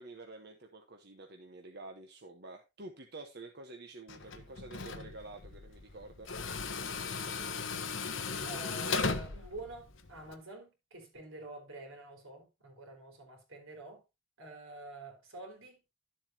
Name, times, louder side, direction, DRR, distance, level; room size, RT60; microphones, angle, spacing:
voice 1, 0.0-6.3, right 2 dB, 50° right, 1.1 m, -49 dB
Tools, 4.1-10.3, left 4 dB, 65° left, 1.1 m, -37 dB
voice 2, 8.4-14.0 14.4-15.8, right 2 dB, 80° right, 3.8 m, -47 dB
12.0 x 7.5 x 2.8 m
head